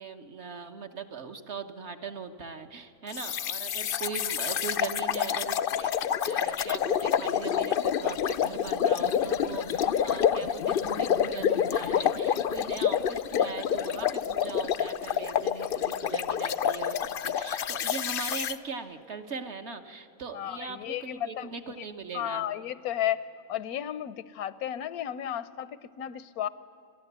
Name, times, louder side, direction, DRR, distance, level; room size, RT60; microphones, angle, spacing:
voice 1, 0.0-22.5, right 5 dB, 50° right, 6 dB, 1.2 m, -40 dB
sound 1, 3.1-18.6, left 8 dB, 65° left, 0.5 m, -28 dB
voice 2, 20.3-21.5 22.1-23.2 23.5-26.5, left 11 dB, 85° left, 17 dB, 1.2 m, -33 dB
29.0 x 12.0 x 8.1 m, 2.9 s
omnidirectional pair, 1.5 m